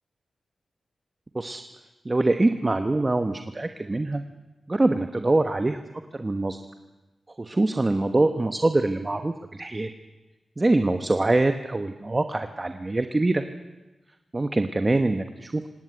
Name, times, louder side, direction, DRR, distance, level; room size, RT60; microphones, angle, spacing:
voice 1, 2.0-4.2 4.7-5.8 6.1-6.6 7.4-9.9 10.6-13.4 14.3-15.7, right 2 dB, 20° right, 7 dB, 1.1 m, -24 dB
26.0 x 18.0 x 9.7 m, 1.1 s
wide cardioid pair, 145°, 0 cm